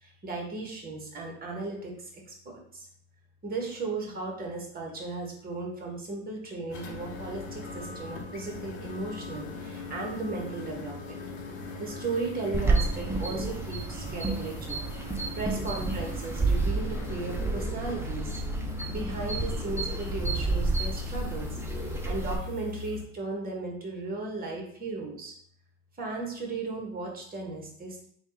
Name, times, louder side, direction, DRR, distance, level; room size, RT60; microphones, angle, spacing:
voice 1, 0.0-2.9 3.4-11.2 11.8-14.8 15.3-18.4 18.9-25.3 26.0-28.1, right 3 dB, 25° right, 0 dB, 1.3 m, -36 dB
sound 1, 6.7-23.0, left 3 dB, 75° left, 1.0 m, -40 dB
sound 2, 12.5-22.4, right 3 dB, 5° right, 0.4 m, -30 dB
3.3 x 2.4 x 4.3 m, 0.64 s
hypercardioid pair, 95°, 39 cm